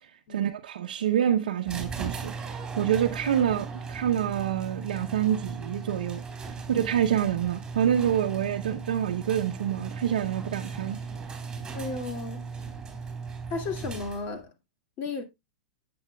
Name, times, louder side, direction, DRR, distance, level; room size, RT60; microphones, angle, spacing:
voice 1, 0.3-11.0, right 10 dB, 85° right, 0.7 m, -27 dB
sound 1, 1.7-14.4, right 5 dB, 15° right, 3.4 m, -37 dB
voice 2, 11.7-12.5 13.5-14.5 15.0-15.2, left 3 dB, 40° left, 2.2 m, -34 dB
10.5 x 7.8 x 2.3 m
hypercardioid pair, 130°, 5 cm